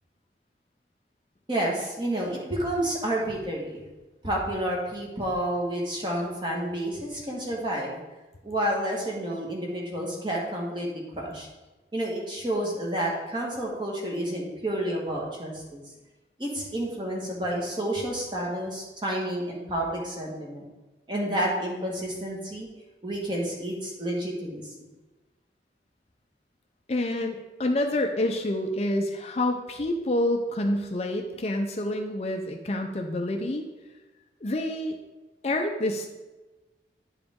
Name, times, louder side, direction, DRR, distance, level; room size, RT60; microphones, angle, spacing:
voice 1, 1.5-3.8 4.2-8.0 8.4-11.5 11.9-15.8 16.4-20.6 21.1-22.7 23.0-24.9, right 1 dB, 25° right, -2 dB, 1.5 m, -30 dB
voice 2, 26.9-33.6 34.4-35.0 35.4-36.1, left 1 dB, 35° left, 3 dB, 0.5 m, -27 dB
9.9 x 5.0 x 3.6 m, 1.1 s
head